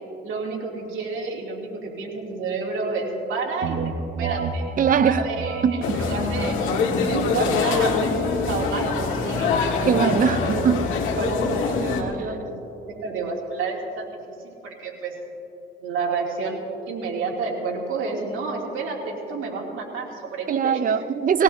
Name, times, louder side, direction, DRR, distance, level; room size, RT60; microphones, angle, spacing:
voice 1, 0.2-3.9 4.2-5.6 6.0-6.5 6.9-8.0 8.5-9.5 10.1-10.7 11.2-12.6 13.0-15.1 15.8-16.6 16.9-20.8, right 4 dB, 80° right, 2.8 m, -30 dB
sound 1, 3.6-13.2, right 4 dB, 60° right, 1.2 m, -34 dB
voice 2, 4.8-5.2 5.6-6.0 7.4-7.5 9.9-10.9 12.3-12.4 20.5-21.4, right 7 dB, 45° right, 0.6 m, -21 dB
sound 2, 5.8-12.0, left 4 dB, 85° left, 1.6 m, -24 dB
20.5 x 17.5 x 2.8 m
cardioid pair, 90°, 20 cm